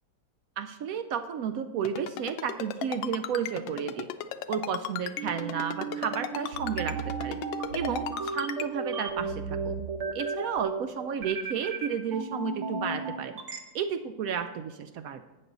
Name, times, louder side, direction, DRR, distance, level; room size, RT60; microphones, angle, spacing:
voice 1, 0.6-4.1 4.5-7.4 7.7-9.8 10.1-13.4 13.7-15.2, right 7 dB, 75° right, 9 dB, 0.8 m, -32 dB
Ringtone, 1.8-8.7, left 11 dB, 80° left, 1.3 m, -35 dB
sound 1, 5.2-13.6, right 4 dB, 45° right, 1.1 m, -34 dB
11.5 x 8.7 x 3.9 m, 1.2 s
omnidirectional pair, 2.0 m